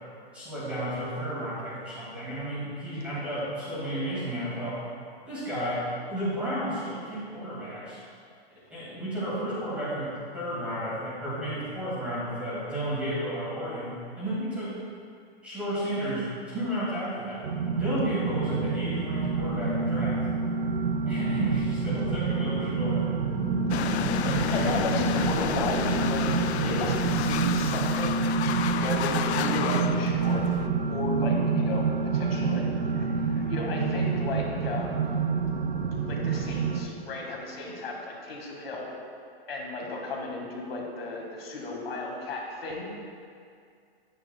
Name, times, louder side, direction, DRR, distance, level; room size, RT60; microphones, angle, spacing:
voice 1, 0.3-4.8 5.2-8.0 8.7-14.7 15.4-17.4 17.8-20.2 21.0-23.1, right 1 dB, 5° right, -11 dB, 1.4 m, -32 dB
sound 1, 17.4-36.8, right 4 dB, 75° right, 1.2 m, -27 dB
sound 2, 23.7-30.7, left 9 dB, 80° left, 0.5 m, -31 dB
voice 2, 24.2-28.1 28.7-30.4 30.9-35.0 36.0-38.9 39.5-42.9, left 2 dB, 60° left, -1 dB, 1.8 m, -34 dB
9.8 x 8.8 x 2.2 m, 2.3 s
hypercardioid pair, 175°, 32 cm